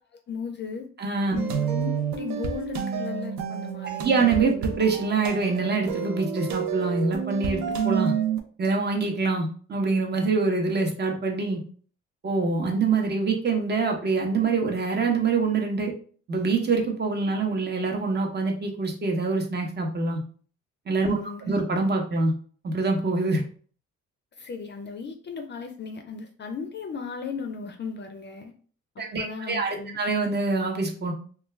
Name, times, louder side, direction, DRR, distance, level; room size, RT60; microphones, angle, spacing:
voice 1, 0.1-0.9 1.3-4.2 21.1-21.6 24.4-28.5 29.0-30.0, left 5 dB, 35° left, 5 dB, 0.4 m, -36 dB
voice 2, 1.0-1.4 4.0-8.1 8.6-11.6 12.2-15.9 16.3-20.2 20.9-21.2 21.4-22.3 22.6-23.4 29.0-31.1, right 4 dB, 35° right, 2 dB, 0.8 m, -25 dB
sound 1, 1.4-8.4, right 7 dB, 70° right, 0.5 m, -29 dB
2.3 x 2.2 x 3.1 m, 0.43 s
cardioid pair, 90°, 30 cm